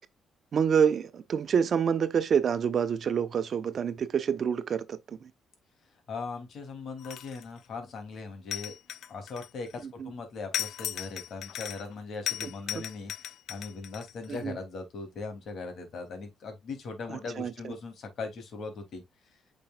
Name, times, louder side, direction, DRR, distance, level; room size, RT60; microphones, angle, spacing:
voice 1, 0.5-5.3 10.0-10.1 12.4-12.8 14.3-14.6 17.1-17.7, right 7 dB, 55° right, 0.8 m, -27 dB
voice 2, 6.1-8.7 9.1-19.0, left 4 dB, 60° left, 2.8 m, -39 dB
sound 1, 7.0-7.6 8.5-9.8 10.5-11.9 12.3-14.4, left 12 dB, 80° left, 0.7 m, -37 dB
8.6 x 5.4 x 2.4 m
cardioid pair, 90°, 0 cm